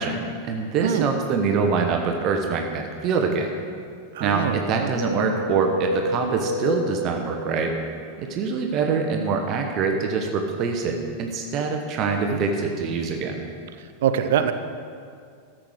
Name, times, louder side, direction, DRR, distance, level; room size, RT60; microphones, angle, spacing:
voice 1, 0.0-3.5 4.2-7.7 8.2-13.4, right 5 dB, 35° right, 3 dB, 1.0 m, -24 dB
sound 1, 2.2-3.4 4.2-8.1, left 2 dB, 80° left, 1.2 m, -32 dB
voice 2, 4.2-4.9 12.3-12.4 14.0-14.5, right 9 dB, 55° right, 10 dB, 0.7 m, -24 dB
13.5 x 7.6 x 4.9 m, 2.2 s
figure-of-eight pair, 90°, 0 cm